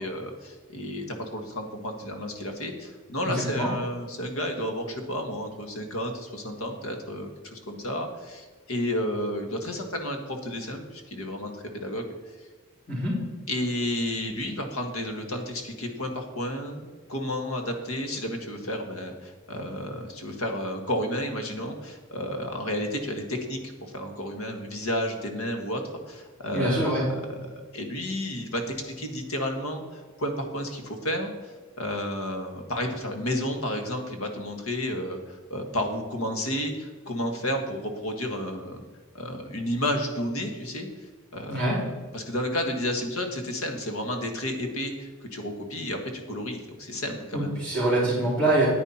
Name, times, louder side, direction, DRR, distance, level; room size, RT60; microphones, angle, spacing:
voice 1, 0.0-12.0 13.5-25.8 26.1-27.3 27.5-31.5 31.8-38.8 39.1-40.9 41.3-41.6 42.1-47.6, left 1 dB, 85° left, 5 dB, 1.6 m, -31 dB
voice 2, 3.2-3.7 12.9-13.2 26.5-27.0 41.5-41.8 47.3-48.7, right 1 dB, 20° left, -11 dB, 3.4 m, -24 dB
9.7 x 9.5 x 4.3 m, 1.4 s
head